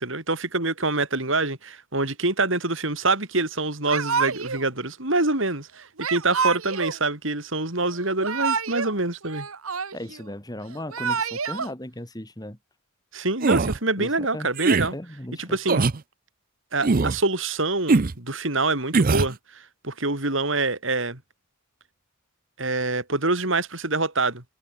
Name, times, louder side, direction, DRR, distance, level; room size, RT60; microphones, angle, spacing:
voice 1, 0.0-9.5 13.1-14.9 15.4-15.9 16.7-21.2 22.6-24.4, right 2 dB, 65° right, 4.8 m, -26 dB
Yell / Crying sobbing, 3.9-4.7 6.0-7.0 8.0-8.9 9.2-10.2 10.7-11.7, right 5 dB, 85° right, 1.6 m, -27 dB
voice 2, 9.9-12.6 14.0-14.5 14.9-15.9, left 1 dB, 20° left, 2.7 m, -36 dB
sound 1, 13.4-13.8 14.6-14.9 15.7-16.0 16.8-17.2 17.9-18.1 18.9-19.3, right 3 dB, 40° right, 0.6 m, -21 dB
head